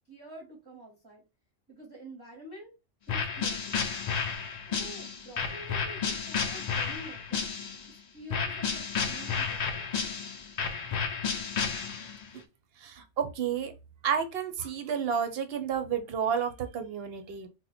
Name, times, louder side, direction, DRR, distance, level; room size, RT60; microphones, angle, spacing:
voice 1, 0.1-1.2 1.7-2.7 3.1-3.8 4.6-7.5 7.9-9.9, right 1 dB, 20° right, -2 dB, 0.8 m, -48 dB
sound 1, 3.1-7.9 8.3-12.3, left 6 dB, 60° left, 0.4 m, -32 dB
voice 2, 12.8-13.7 14.0-17.5, right 7 dB, 65° right, 8 dB, 0.7 m, -31 dB
2.8 x 2.2 x 4.1 m, 0.27 s
omnidirectional pair, 1.2 m